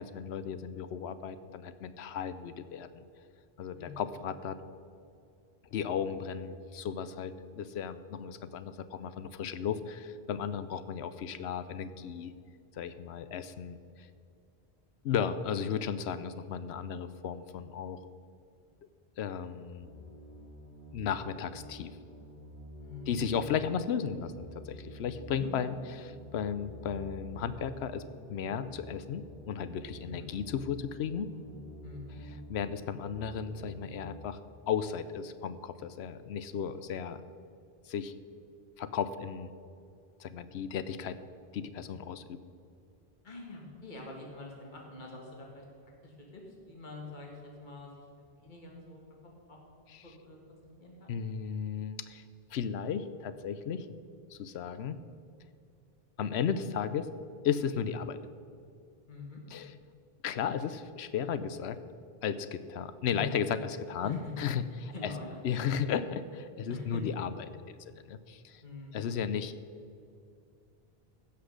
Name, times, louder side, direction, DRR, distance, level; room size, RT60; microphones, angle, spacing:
voice 1, 0.0-3.0 3.6-4.6 5.7-12.3 12.7-14.1 15.0-18.0 19.2-19.9 20.9-21.9 23.1-28.0 28.3-31.3 32.5-34.4 34.7-37.2 37.9-38.1 38.8-39.5 40.2-41.2 41.5-42.4 49.9-50.0 51.1-52.2 52.5-53.9 54.3-55.0 56.2-57.1 57.4-58.2 59.5-59.7 60.2-61.8 62.2-64.6 65.0-65.1 65.4-68.6 68.9-69.5, left 7 dB, 85° left, 13 dB, 0.9 m, -35 dB
voice 2, 3.8-4.1 22.8-23.2 25.3-25.5 30.0-30.3 31.8-32.2 43.2-45.7 46.0-49.0 49.5-49.6 50.0-51.1 59.1-59.4 63.1-63.2 64.0-64.3 64.9-65.4 66.7-67.0 68.6-68.9, left 3 dB, 50° left, 0 dB, 1.9 m, -46 dB
sound 1, 19.8-34.1, right 1 dB, 10° right, 2.3 m, -48 dB
16.0 x 5.9 x 6.4 m, 2.4 s
omnidirectional pair, 1.1 m